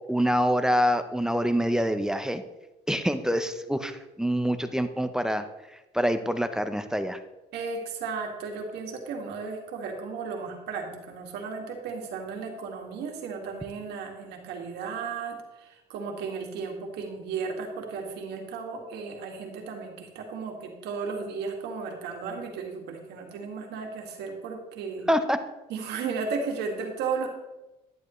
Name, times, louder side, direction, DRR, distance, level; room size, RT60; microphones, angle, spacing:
voice 1, 0.1-2.4 2.9-3.9 4.2-5.4 5.9-7.2 25.1-25.4, equal, 5° right, 9 dB, 0.7 m, -25 dB
voice 2, 7.5-25.1 25.7-27.3, right 5 dB, 80° right, 2 dB, 2.0 m, -34 dB
11.0 x 10.5 x 3.1 m, 1.0 s
cardioid pair, 110°, 17 cm